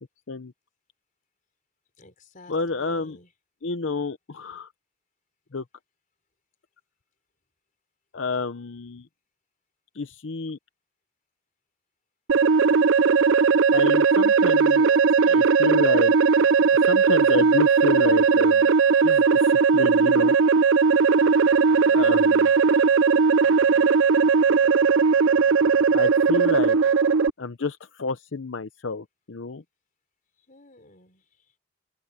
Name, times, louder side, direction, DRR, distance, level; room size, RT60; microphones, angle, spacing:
voice 1, 2.0-3.3 14.8-15.2 21.8-22.2 22.6-23.3 30.5-31.3, left 2 dB, 45° left, 3.9 m, -50 dB
voice 2, 2.5-3.2 3.6-4.7 5.5-5.6 8.1-9.1 9.9-10.6 13.7-14.8 15.2-16.1 16.7-18.7 19.0-20.4 21.8-22.5 25.9-26.8 27.4-29.6, left 4 dB, 80° left, 0.8 m, -29 dB
sound 1, 12.3-27.3, right 5 dB, 85° right, 0.5 m, -18 dB
open air
head